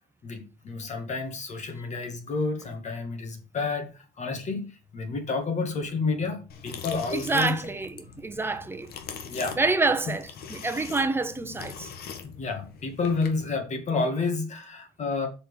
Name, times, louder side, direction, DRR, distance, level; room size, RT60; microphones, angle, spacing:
voice 1, 0.2-4.7 4.9-7.5 8.5-8.6 9.2-9.6 12.2-15.3, left 4 dB, 45° left, 2.3 m, -30 dB
sound 1, 6.5-13.5, left 7 dB, 70° left, 1.4 m, -42 dB
voice 2, 7.1-8.9 9.6-11.9, right 3 dB, 15° right, 1.1 m, -27 dB
6.6 x 4.5 x 6.4 m
cardioid pair, 110°, 17 cm